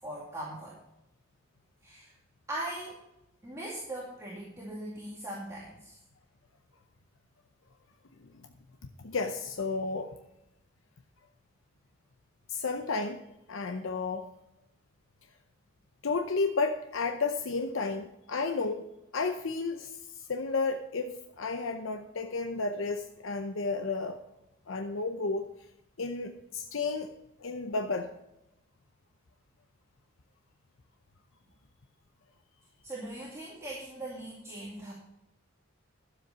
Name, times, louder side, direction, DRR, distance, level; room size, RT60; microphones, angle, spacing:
voice 1, 0.0-0.8 1.8-2.1 2.5-3.0 3.4-6.0 32.8-34.9, right 1 dB, 15° right, -5 dB, 2.2 m, -40 dB
voice 2, 9.0-10.1 12.5-13.2 13.5-14.3 16.0-20.0 20.3-24.2 24.7-25.5 26.0-27.1 27.4-28.1, left 3 dB, 80° left, 6 dB, 0.7 m, -32 dB
12.0 x 7.8 x 5.5 m, 0.90 s
head